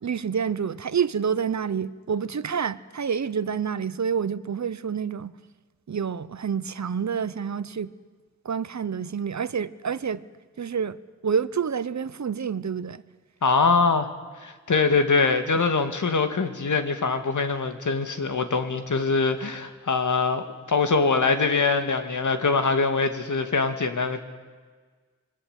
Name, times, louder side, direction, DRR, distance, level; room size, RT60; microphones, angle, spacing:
voice 1, 0.0-5.3 5.9-7.9 8.4-10.2 10.6-11.0 11.2-13.0, right 7 dB, 70° right, 16 dB, 0.9 m, -28 dB
voice 2, 13.4-14.1 14.4-24.2, left 4 dB, 85° left, 7 dB, 2.2 m, -23 dB
26.5 x 22.0 x 8.3 m, 1.5 s
wide cardioid pair, 80°, 30 cm